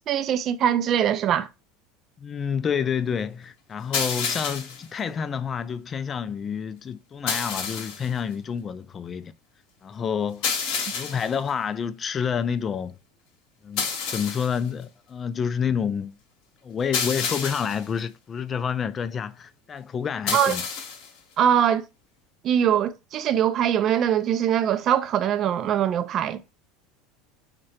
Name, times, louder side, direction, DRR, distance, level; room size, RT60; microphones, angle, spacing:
voice 1, 0.1-1.5 20.3-20.5 21.4-21.8 22.4-26.6, right 9 dB, 45° right, 0.3 m, -22 dB
voice 2, 2.2-9.3 9.8-10.4 10.9-13.0 13.6-16.2 16.6-20.6, left 7 dB, 30° left, 0.3 m, -28 dB
sound 1, 3.9-4.9 7.3-8.1 10.4-11.4 13.8-14.6 16.9-17.9 20.3-21.1, left 6 dB, 65° left, 0.9 m, -29 dB
3.6 x 2.2 x 2.8 m
hypercardioid pair, 85°, 0 cm